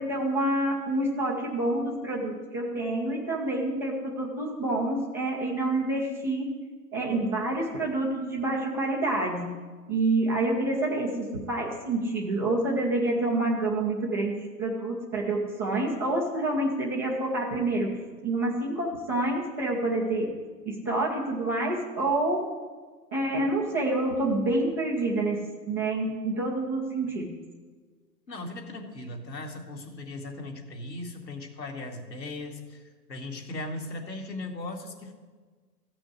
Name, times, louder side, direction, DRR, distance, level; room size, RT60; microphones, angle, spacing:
voice 1, 0.0-6.5 6.9-9.5 9.9-17.9 18.2-20.3 20.6-22.5 23.1-25.4 25.7-27.3, right 2 dB, 10° right, -9 dB, 0.4 m, -27 dB
voice 2, 28.3-35.1, left 2 dB, 80° left, 0 dB, 2.5 m, -38 dB
14.5 x 6.2 x 9.7 m, 1.4 s
figure-of-eight pair, 120°, 49 cm